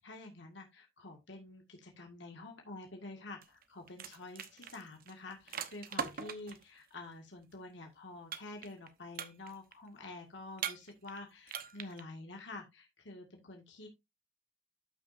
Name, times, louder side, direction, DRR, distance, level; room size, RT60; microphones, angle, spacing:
voice 1, 0.0-13.9, left 2 dB, 70° left, 2 dB, 1.8 m, -48 dB
sound 1, 3.4-3.6 3.9-6.6 8.3-8.9 9.1-9.7 10.6-11.2 11.5-12.0, right 7 dB, 50° right, 1.0 m, -41 dB
13.0 x 6.1 x 2.6 m, 0.21 s
head